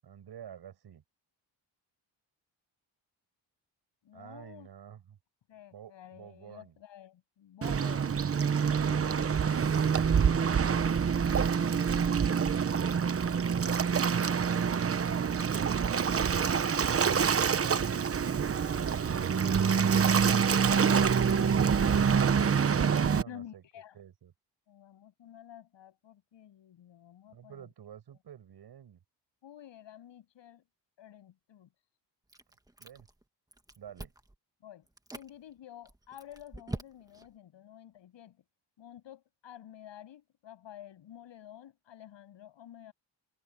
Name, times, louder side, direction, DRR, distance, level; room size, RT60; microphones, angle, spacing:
voice 1, 0.0-1.0 4.1-5.2 5.7-6.8 23.1-23.6 23.9-24.3 27.3-29.0 32.8-33.1 33.8-34.1, right 9 dB, 60° right, 8.0 m, -51 dB
voice 2, 4.0-4.7 5.5-8.3 8.7-9.4 23.3-24.0 24.7-27.7 29.4-30.6 31.0-31.7 34.6-34.9 35.1-38.4 38.8-42.9, left 11 dB, 80° left, 7.9 m, -51 dB
Waves surf, 7.6-23.2, right 6 dB, 30° right, 1.0 m, -26 dB
Chewing mastication, 32.3-33.2 33.5-34.3 34.9-35.3 35.9-37.3, right 2 dB, 10° right, 1.5 m, -43 dB
wide cardioid pair, 145°, 43 cm